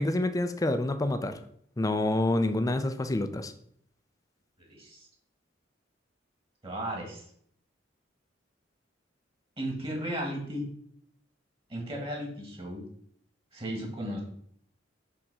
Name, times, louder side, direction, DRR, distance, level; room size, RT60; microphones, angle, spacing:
voice 1, 0.0-1.4 1.8-3.5, left 2 dB, 20° left, 10 dB, 0.4 m, -27 dB
voice 2, 4.6-5.1 6.6-7.2 9.6-10.7 11.7-12.8 13.5-14.2, equal, 30° right, 0 dB, 1.6 m, -35 dB
5.7 x 3.5 x 5.4 m, 0.67 s
head